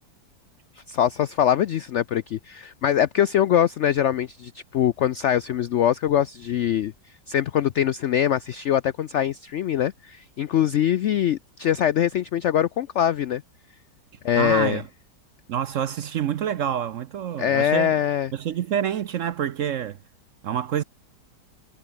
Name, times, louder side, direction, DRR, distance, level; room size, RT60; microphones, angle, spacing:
voice 1, 0.8-6.9 7.3-13.4 14.2-14.8 17.4-18.3, left 10 dB, 90° left, 0.6 m, -23 dB
voice 2, 14.4-14.9 15.5-18.0 18.3-20.0 20.4-20.8, right 9 dB, 60° right, 0.8 m, -27 dB
omnidirectional pair, 1.9 m